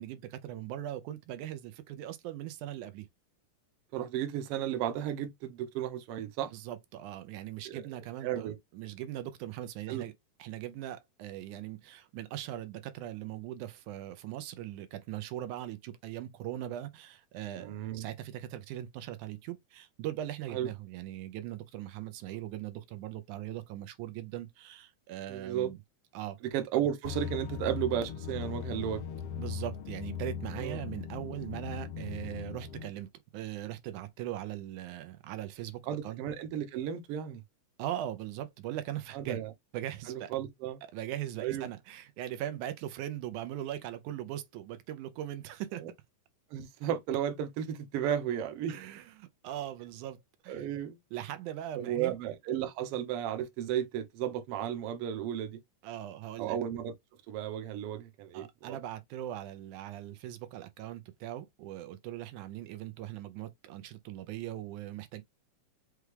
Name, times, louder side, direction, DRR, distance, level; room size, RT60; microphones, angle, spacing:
voice 1, 0.0-3.1 6.5-10.1 10.4-25.8 26.1-26.4 29.4-36.2 37.8-39.4 39.7-40.3 40.9-45.8 48.7-50.7 51.1-52.1 55.8-56.6 58.3-65.2, right 12 dB, 85° right, 2.1 m, -40 dB
voice 2, 3.9-6.5 7.6-7.8 8.2-8.6 9.9-10.0 17.6-18.1 20.5-20.7 25.3-25.7 26.5-29.0 30.6-30.8 35.9-37.4 39.1-39.5 40.1-40.8 41.4-41.7 45.8-45.9 46.5-48.7 50.5-51.0 51.7-55.6 56.4-56.9 57.3-58.8, right 10 dB, 65° right, 1.5 m, -34 dB
sound 1, 27.0-32.9, left 7 dB, 85° left, 1.3 m, -39 dB
6.0 x 2.2 x 3.2 m
omnidirectional pair, 3.4 m